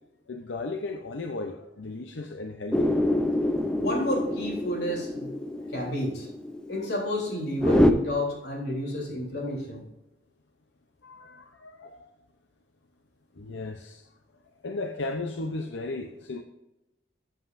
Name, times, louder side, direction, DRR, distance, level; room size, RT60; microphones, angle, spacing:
voice 1, 0.3-2.9 5.6-5.7 6.8-6.9 11.0-12.1 13.3-14.1 14.6-16.4, left 3 dB, 85° left, 5 dB, 0.7 m, -36 dB
sound 1, 2.7-7.9, left 1 dB, 5° left, 0.5 m, -26 dB
voice 2, 3.7-5.3 5.7-6.3 6.7-9.8, left 1 dB, 65° left, -2 dB, 3.4 m, -30 dB
13.5 x 7.8 x 2.6 m, 0.99 s
head